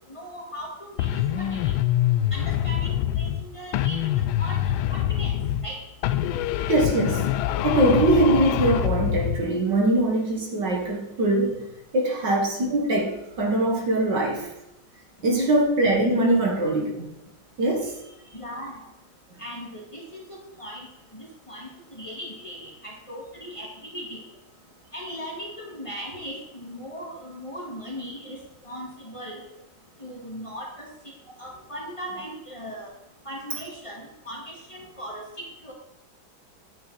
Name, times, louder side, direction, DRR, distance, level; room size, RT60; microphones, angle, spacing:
voice 1, 0.1-1.7 2.3-5.8 18.3-18.8 19.4-24.2 24.9-28.4 28.6-29.4 30.0-30.9 31.4-32.9 33.3-35.2 35.6-35.7, equal, 15° left, -2 dB, 2.2 m, -38 dB
sound 1, 1.0-3.5 3.7-5.7 6.0-9.5, left 12 dB, 85° left, 1.4 m, -25 dB
voice 2, 6.7-7.3 7.6-11.6 11.9-14.5 15.2-17.1 17.6-17.9, right 1 dB, 60° right, 0 dB, 2.3 m, -22 dB
9.4 x 9.0 x 4.1 m, 0.91 s
omnidirectional pair, 2.2 m